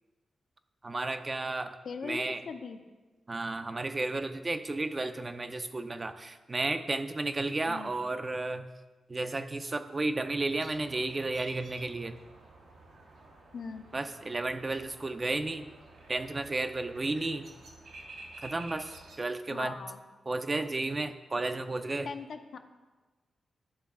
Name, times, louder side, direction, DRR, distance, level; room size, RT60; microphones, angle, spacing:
voice 1, 0.8-2.4 3.3-8.7 9.1-12.2 13.9-15.7 16.1-17.5 18.4-18.9 19.2-19.8 20.3-22.1, right 2 dB, 30° right, 9 dB, 0.4 m, -33 dB
voice 2, 1.8-2.8 7.7-7.9 13.5-13.9 19.5-20.0 22.0-22.6, left 5 dB, 65° left, 7 dB, 0.5 m, -40 dB
sound 1, 10.5-19.2, right 2 dB, 85° right, 1.2 m, -51 dB
11.0 x 3.9 x 3.6 m, 1.3 s
cardioid pair, 80°, 0 cm